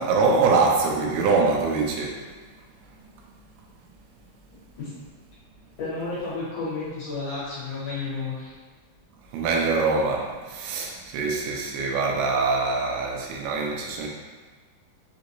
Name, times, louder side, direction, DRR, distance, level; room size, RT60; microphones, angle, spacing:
voice 1, 0.0-2.2 9.3-14.1, right 4 dB, 85° right, -1 dB, 2.6 m, -24 dB
voice 2, 5.8-8.5, left 3 dB, 60° left, -9 dB, 2.5 m, -31 dB
6.2 x 2.5 x 2.9 m, 1.4 s
omnidirectional pair, 4.5 m